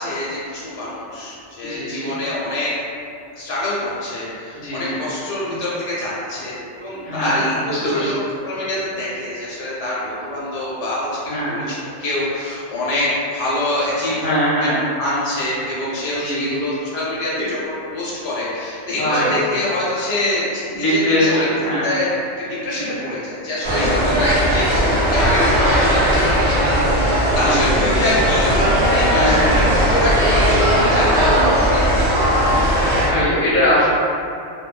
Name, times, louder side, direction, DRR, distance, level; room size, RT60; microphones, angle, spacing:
voice 1, 0.0-2.7 3.4-11.2 11.4-14.3 14.6-21.5 21.8-22.1 22.4-24.8 25.1-32.5, left 1 dB, 75° left, -7 dB, 0.9 m, -25 dB
voice 2, 1.6-2.1 4.5-4.8 7.0-8.1 11.3-11.5 14.2-14.8 16.2-16.6 17.3-17.5 19.0-19.3 20.7-21.9 22.7-22.9 23.7-24.2 27.4-27.9 29.1-29.6 33.0-33.9, equal, 45° left, -8 dB, 0.7 m, -21 dB
sound 1, 23.6-33.1, equal, 60° right, 0.9 m, -17 dB
2.5 x 2.1 x 2.3 m, 2.5 s
omnidirectional pair, 1.3 m